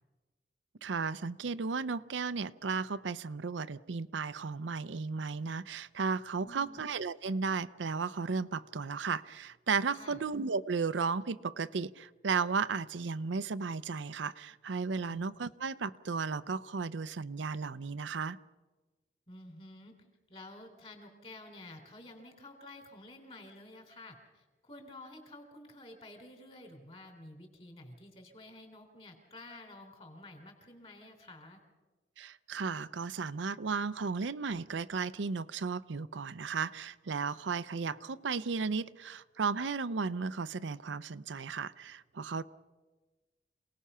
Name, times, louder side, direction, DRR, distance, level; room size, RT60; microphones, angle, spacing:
voice 1, 0.8-18.4 32.2-42.4, right 5 dB, 85° right, 13 dB, 0.6 m, -34 dB
voice 2, 6.4-6.8 9.9-10.2 15.0-15.3 19.3-19.9 20.3-31.6 42.4-42.5, left 1 dB, 30° left, 5 dB, 3.5 m, -51 dB
27.0 x 18.5 x 5.6 m, 1.2 s
head